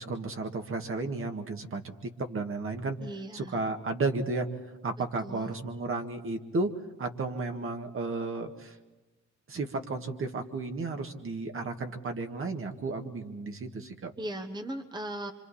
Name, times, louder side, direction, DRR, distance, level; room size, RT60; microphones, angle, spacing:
voice 1, 0.0-1.9 2.2-3.0 3.3-4.5 4.8-6.7 7.0-8.8 9.5-14.1, right 3 dB, 45° right, 4 dB, 1.9 m, -33 dB
voice 2, 3.0-3.6 5.2-5.5 14.2-15.3, right 1 dB, 15° right, 6 dB, 1.3 m, -38 dB
26.5 x 26.0 x 4.3 m, 1.1 s
cardioid pair, 90°, 30 cm